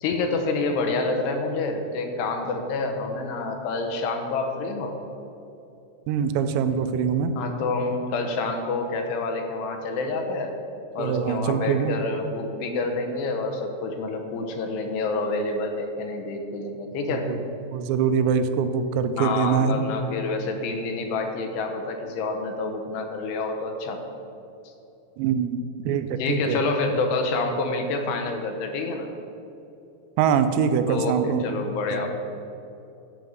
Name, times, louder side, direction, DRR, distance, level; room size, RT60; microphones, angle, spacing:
voice 1, 0.0-5.0 7.4-10.5 11.0-17.4 19.2-24.0 24.6-24.7 26.2-29.1 30.9-32.2, left 3 dB, 75° left, 4 dB, 2.8 m, -28 dB
voice 2, 6.1-7.3 11.0-11.9 17.1-17.4 17.7-19.9 25.2-25.6 25.9-26.6 30.2-31.4 31.9-32.1, right 7 dB, 85° right, 10 dB, 2.9 m, -23 dB
9.4 x 5.4 x 7.5 m, 2.8 s
omnidirectional pair, 5.0 m